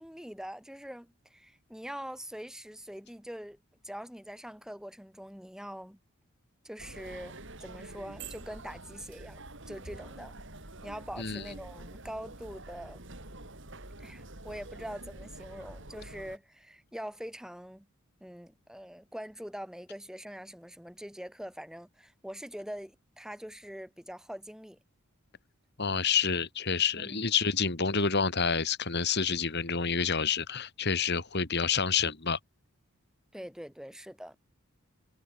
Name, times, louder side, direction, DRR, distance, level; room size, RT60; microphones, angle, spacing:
voice 1, 0.0-3.6 3.8-6.0 6.6-10.3 10.8-13.0 14.0-17.9 18.2-24.8 27.0-27.2 33.3-34.4, equal, 5° right, 7.4 m, -43 dB
sound 1, 6.8-16.4, right 2 dB, 55° right, 4.8 m, -46 dB
voice 2, 25.8-32.4, left 6 dB, 50° left, 2.1 m, -28 dB
head